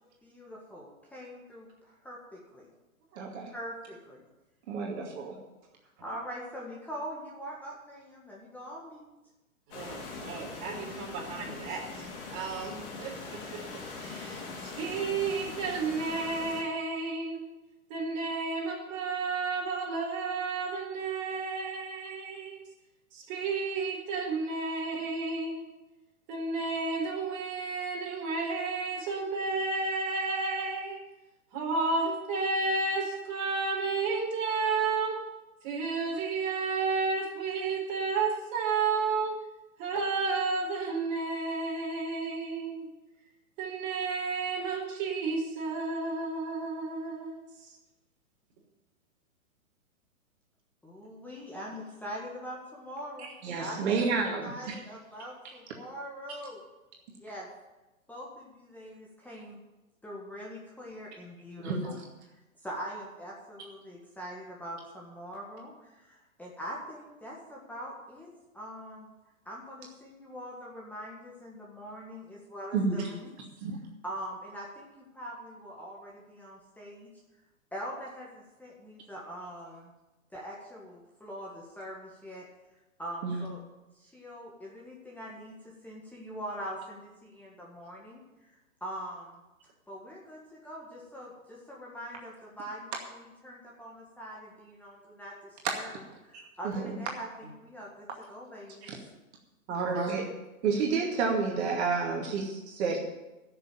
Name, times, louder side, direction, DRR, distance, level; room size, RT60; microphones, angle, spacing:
voice 1, 0.2-2.7 3.5-4.2 6.0-9.1 50.8-54.0 54.4-56.6 57.1-57.5 58.1-59.6 60.0-62.0 62.6-68.3 68.5-69.1 69.4-73.3 74.0-77.1 77.7-79.9 80.3-82.4 83.0-83.6 83.9-88.2 88.5-89.4 89.9-98.9, equal, 5° left, -4 dB, 1.7 m, -43 dB
voice 2, 3.2-3.5 4.7-5.4 53.4-54.8 61.6-61.8 72.7-73.1 73.6-73.8 83.2-83.4 96.6-97.0 98.8-99.0 99.7-100.2 100.6-103.0, right 4 dB, 50° right, 0 dB, 2.4 m, -30 dB
sound 1, 9.7-16.6, left 4 dB, 40° left, 3.6 m, -41 dB
voice 3, 9.7-13.6 14.0-17.4 17.9-22.6 23.1-25.7 26.3-31.0 31.5-35.2 35.6-39.4 39.8-42.9 43.6-47.4 99.7-100.2, right 4 dB, 35° right, -1 dB, 4.1 m, -32 dB
11.5 x 6.7 x 9.1 m, 1.0 s
hypercardioid pair, 125°, 42 cm